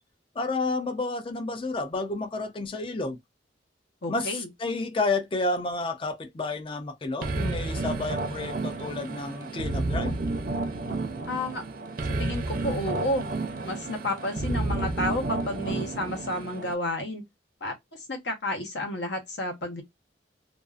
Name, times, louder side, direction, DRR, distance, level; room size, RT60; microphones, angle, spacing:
voice 1, 0.4-3.2 4.1-10.2, left 3 dB, 30° left, 0.4 m, -30 dB
voice 2, 4.0-4.5 11.3-11.6 12.2-13.3 13.6-17.2 17.6-19.8, left 1 dB, 70° left, 1.0 m, -31 dB
sound 1, 7.2-16.7, right 2 dB, 55° right, 0.6 m, -31 dB
2.5 x 2.4 x 2.4 m
head